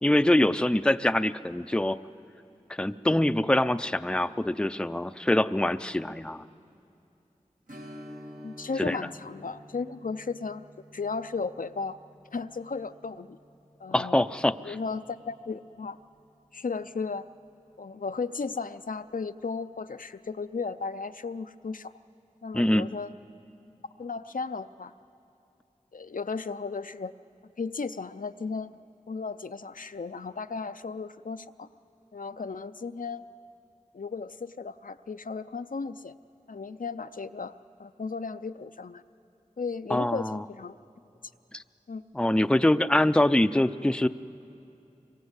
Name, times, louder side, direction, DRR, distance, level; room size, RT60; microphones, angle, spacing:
voice 1, 0.0-2.0 2.7-6.4 8.8-9.0 13.9-14.8 22.5-22.9 39.9-40.4 41.5-41.6 42.1-44.1, left 1 dB, 5° left, 11 dB, 0.5 m, -24 dB
Strum, 7.7-16.9 17.2-17.3 19.8-20.0 20.5-20.6, equal, 80° right, 2.0 m, -51 dB
voice 2, 8.4-10.6 10.9-12.0 12.3-13.4 13.8-14.2 14.6-16.0 16.5-17.2 17.8-21.9 22.4-23.1 24.0-24.9 25.9-27.1 27.6-28.7 29.1-31.7 32.1-33.2 33.9-36.1 36.5-37.5 37.8-39.0 39.6-40.8 41.9-42.0, left 4 dB, 80° left, 10 dB, 0.5 m, -35 dB
25.0 x 22.5 x 8.1 m, 2.8 s
wide cardioid pair, 50°, 14 cm